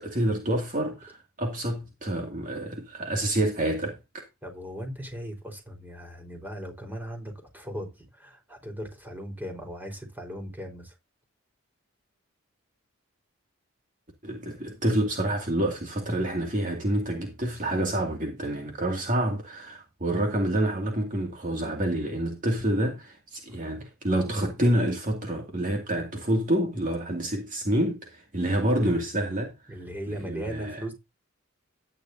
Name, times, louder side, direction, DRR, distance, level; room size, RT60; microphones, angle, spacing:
voice 1, 0.0-4.2 14.2-29.8 30.1-30.8, right 1 dB, 35° right, 2.4 m, -28 dB
voice 2, 4.4-10.9 23.5-23.6 29.7-30.9, equal, 10° right, 4.4 m, -38 dB
13.0 x 10.5 x 2.7 m
head